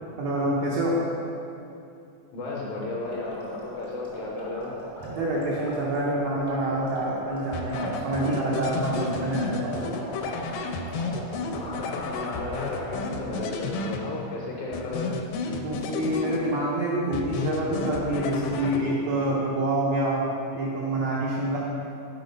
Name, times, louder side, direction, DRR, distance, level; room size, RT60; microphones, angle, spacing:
voice 1, 0.2-1.0 5.0-9.9 15.5-20.2 20.5-21.6, right 1 dB, 80° right, -5 dB, 1.4 m, -27 dB
voice 2, 2.3-4.7 11.5-15.2, left 2 dB, 70° left, -3 dB, 1.9 m, -34 dB
sound 1, 3.0-12.9, right 1 dB, 40° right, 0.6 m, -41 dB
sound 2, 7.5-14.4 14.7-16.8 17.1-19.2, left 4 dB, 85° left, 2.3 m, -32 dB
6.2 x 5.0 x 5.2 m, 2.6 s
omnidirectional pair, 4.0 m